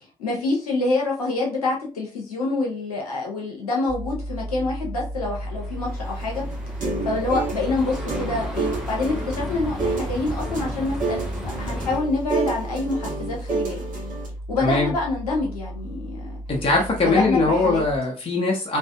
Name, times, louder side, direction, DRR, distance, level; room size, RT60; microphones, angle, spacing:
voice 1, 0.2-6.4 7.0-11.2 11.6-13.8 14.5-16.4 17.0-17.8, left 3 dB, 80° left, -1 dB, 0.6 m, -26 dB
sound 1, 3.9-18.0, right 1 dB, 20° right, 1.0 m, -34 dB
sound 2, 5.1-12.0, equal, ahead, 0.9 m, -36 dB
sound 3, 6.1-14.3, right 3 dB, 45° right, 1.2 m, -30 dB
voice 2, 14.6-14.9 16.5-18.8, left 3 dB, 30° left, -1 dB, 0.8 m, -21 dB
2.5 x 2.5 x 2.2 m, 0.34 s
figure-of-eight pair, 40°, 19 cm